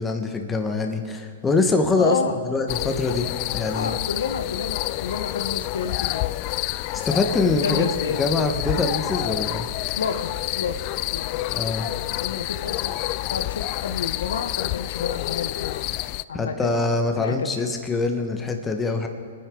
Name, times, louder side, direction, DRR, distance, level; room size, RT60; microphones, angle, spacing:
voice 1, 0.0-2.2 2.4-4.0 6.9-7.9 8.2-9.7 11.5-11.9 16.3-19.1, left 3 dB, 15° left, 4 dB, 1.3 m, -24 dB
voice 2, 1.9-2.4 3.7-6.3 7.6-8.2 10.0-11.7 12.1-15.9 16.3-16.9 17.2-17.6, left 6 dB, 80° left, 8 dB, 1.0 m, -30 dB
sound 1, 2.7-16.2, left 18 dB, 40° left, 0.3 m, -28 dB
25.0 x 10.0 x 3.8 m, 2.2 s
hypercardioid pair, 130°, 0 cm